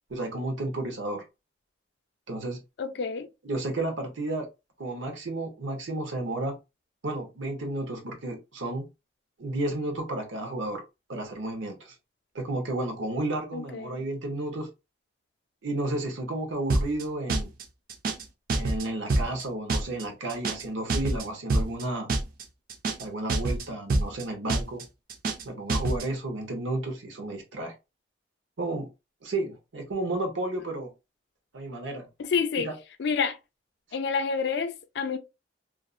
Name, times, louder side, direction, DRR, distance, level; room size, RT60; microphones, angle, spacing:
voice 1, 0.1-1.2 2.3-2.6 3.4-4.5 4.8-6.5 7.0-8.8 9.4-10.8 11.1-11.9 12.3-14.7 15.6-17.5 18.5-22.1 23.0-24.8 25.4-27.7 28.6-28.9 29.2-30.9 31.5-32.1 32.6-32.7, right 2 dB, 85° right, 0.8 m, -32 dB
voice 2, 2.8-3.3 13.5-14.0 32.2-32.7 33.0-33.4 33.9-35.2, left 5 dB, 60° left, 0.3 m, -28 dB
sound 1, 16.7-17.0 17.3-17.6 17.9-18.2 18.5-18.8 19.1-19.4 19.7-20.0 20.3-20.6 20.9-21.2 21.5-21.8 22.1-22.4 22.7-23.0 23.3-23.6 23.9-24.2 24.5-24.8 25.1-25.4 25.7-26.0, right 2 dB, 50° right, 0.4 m, -26 dB
2.5 x 2.0 x 2.4 m
head